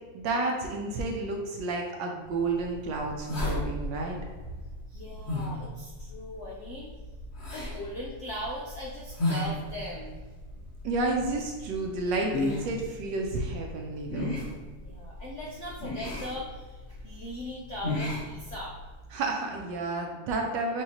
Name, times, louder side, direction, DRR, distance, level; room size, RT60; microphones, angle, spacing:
voice 1, 0.1-4.2 10.8-14.3 19.1-20.8, right 3 dB, 75° right, 1 dB, 1.2 m, -31 dB
sound 1, 2.4-19.0, left 1 dB, 40° left, 1.3 m, -36 dB
voice 2, 4.9-6.9 7.5-10.2 14.8-18.8, equal, 75° left, -3 dB, 0.6 m, -39 dB
6.2 x 2.7 x 2.9 m, 1.4 s
omnidirectional pair, 2.1 m